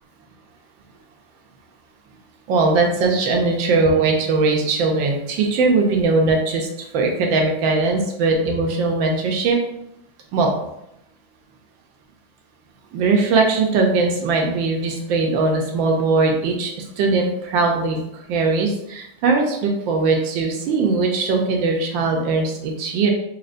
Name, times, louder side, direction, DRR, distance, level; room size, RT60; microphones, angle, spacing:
voice 1, 2.5-9.6 10.3-10.5 12.9-23.1, right 3 dB, 80° right, 2 dB, 1.3 m, -20 dB
4.2 x 2.8 x 2.5 m, 0.80 s
omnidirectional pair, 2.1 m